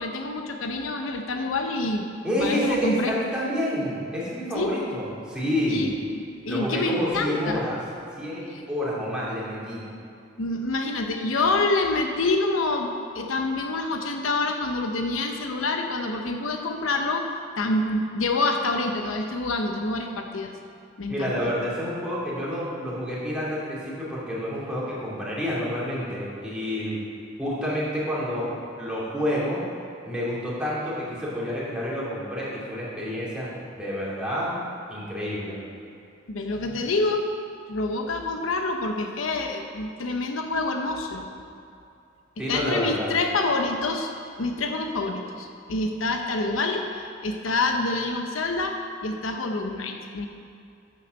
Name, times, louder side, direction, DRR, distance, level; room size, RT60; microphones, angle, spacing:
voice 1, 0.0-2.1 2.4-3.1 4.5-4.7 5.7-7.6 8.5-8.6 10.4-17.3 17.6-20.5 21.0-21.4 36.3-37.3 37.7-41.3 42.5-44.1 44.4-50.3, left 2 dB, 85° left, 4 dB, 0.8 m, -27 dB
voice 2, 2.2-5.9 6.5-7.8 8.2-9.8 21.1-27.0 27.4-28.5 28.8-29.6 30.0-33.5 33.8-34.5 34.9-35.6 42.4-43.1, equal, 5° right, -8 dB, 2.8 m, -28 dB
9.6 x 7.2 x 6.5 m, 2.5 s
head